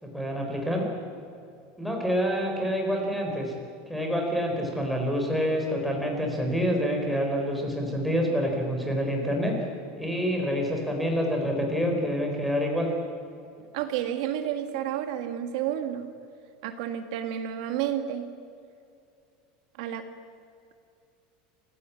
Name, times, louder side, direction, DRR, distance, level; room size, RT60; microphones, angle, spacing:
voice 1, 0.0-0.9 1.8-3.5 3.9-9.5 10.0-12.9, equal, ahead, 1 dB, 4.3 m, -27 dB
voice 2, 13.7-16.1 16.6-18.3 19.8-20.1, right 10 dB, 65° right, 7 dB, 1.9 m, -30 dB
28.5 x 16.5 x 8.5 m, 2.5 s
supercardioid pair, 170°, 4 cm